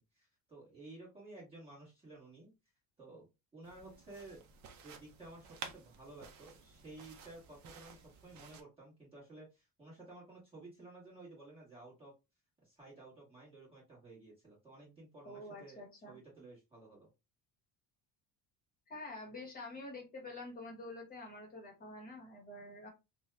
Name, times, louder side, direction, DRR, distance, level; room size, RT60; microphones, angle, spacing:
voice 1, 0.1-2.5 3.0-3.3 3.5-4.4 4.8-12.1 12.6-17.1, right 2 dB, 15° right, -6 dB, 1.3 m, -54 dB
sound 1, 3.6-8.6, right 6 dB, 45° right, 0.5 m, -53 dB
voice 2, 15.2-16.2 18.9-22.9, left 2 dB, 20° left, 0 dB, 1.1 m, -47 dB
2.7 x 2.2 x 3.2 m, 0.25 s
cardioid pair, 175°, 40 cm